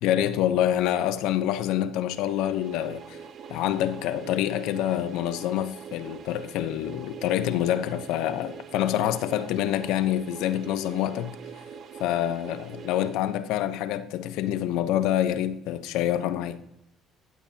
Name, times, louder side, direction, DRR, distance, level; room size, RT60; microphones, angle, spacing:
voice 1, 0.0-3.2 3.5-11.4 12.0-16.6, left 11 dB, 80° left, 0.8 m, -26 dB
sound 1, 2.0-13.8, right 7 dB, 55° right, 1.6 m, -43 dB
15.5 x 12.0 x 2.9 m
supercardioid pair, 85°, 0 cm